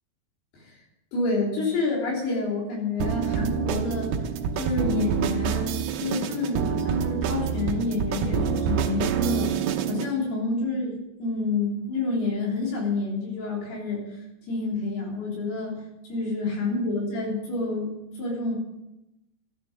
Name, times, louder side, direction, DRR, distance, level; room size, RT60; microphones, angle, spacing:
voice 1, 1.1-4.1 4.6-9.5 9.9-14.2 14.5-15.8 16.1-18.5, left 3 dB, 70° left, -3 dB, 5.5 m, -28 dB
sound 1, 3.0-10.1, right 8 dB, 75° right, 2.8 m, -27 dB
15.0 x 10.5 x 6.8 m, 0.91 s
omnidirectional pair, 4.8 m